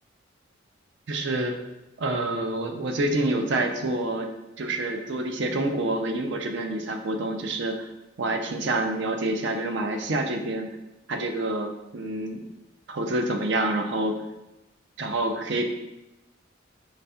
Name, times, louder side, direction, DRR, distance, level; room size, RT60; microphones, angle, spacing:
voice 1, 1.1-1.6 2.0-4.3 4.6-7.9 8.2-10.7 11.1-12.4 12.9-14.3 15.0-15.7, right 2 dB, 60° right, 5 dB, 0.5 m, -27 dB
4.1 x 4.0 x 2.3 m, 0.96 s
head